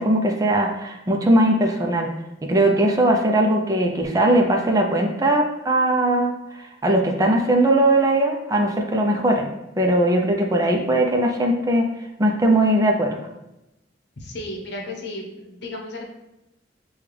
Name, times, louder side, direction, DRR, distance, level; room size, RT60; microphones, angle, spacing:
voice 1, 0.0-2.1 2.5-9.5 9.8-11.9 12.2-13.2, right 1 dB, 20° right, 1 dB, 0.4 m, -19 dB
voice 2, 14.2-16.0, left 1 dB, 65° left, 0 dB, 0.9 m, -34 dB
6.7 x 2.3 x 3.3 m, 0.92 s
head